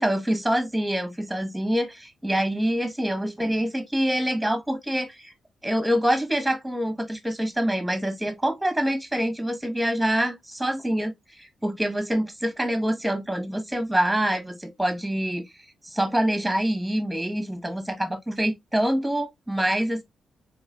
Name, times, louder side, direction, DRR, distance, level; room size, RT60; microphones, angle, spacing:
voice 1, 0.0-5.3 5.6-20.0, right 1 dB, 5° right, 1.1 m, -26 dB
4.1 x 3.1 x 2.3 m
supercardioid pair, 55°, 0 cm